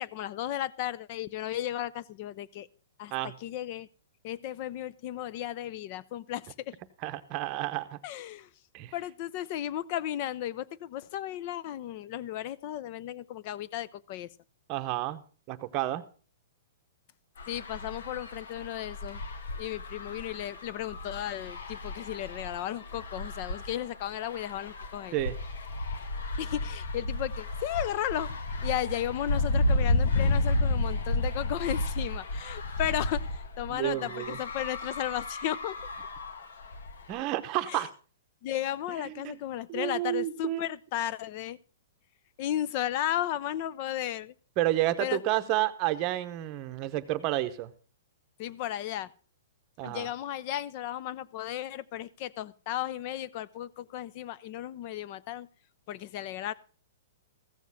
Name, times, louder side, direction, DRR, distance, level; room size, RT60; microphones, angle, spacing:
voice 1, 0.0-2.7 3.0-3.9 4.2-6.8 8.0-8.5 8.9-14.3 17.5-19.2 19.6-25.1 26.4-28.3 28.6-35.7 37.7-37.8 38.4-41.6 42.4-44.3 45.0-45.2 48.4-49.1 49.8-55.5 55.9-56.5, left 12 dB, 35° left, 0.5 m, -34 dB
voice 2, 7.0-8.0 8.7-8.9 14.7-15.2 15.5-16.0 25.1-25.4 33.7-34.4 37.1-37.9 39.0-39.4 39.7-40.6 44.6-47.7 49.8-50.1, right 15 dB, 30° right, 0.9 m, -30 dB
sound 1, 17.4-37.2, left 2 dB, 80° left, 1.6 m, -32 dB
15.0 x 7.3 x 5.5 m
hypercardioid pair, 165°, 0 cm